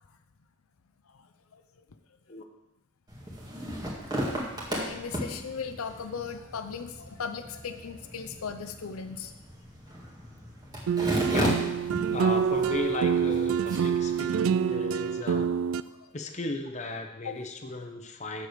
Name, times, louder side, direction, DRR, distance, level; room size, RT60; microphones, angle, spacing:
sound 1, 3.1-14.2, equal, 20° right, 1.9 m, -36 dB
voice 1, 4.7-9.4 15.9-16.1 17.2-17.3, left 6 dB, 80° left, 7 dB, 0.6 m, -37 dB
sound 2, 10.9-15.8, right 7 dB, 75° right, 0.4 m, -26 dB
voice 2, 11.3-11.6 12.1-15.5 16.1-18.5, left 2 dB, 35° left, 5 dB, 0.9 m, -35 dB
7.8 x 6.6 x 6.6 m, 1.0 s
head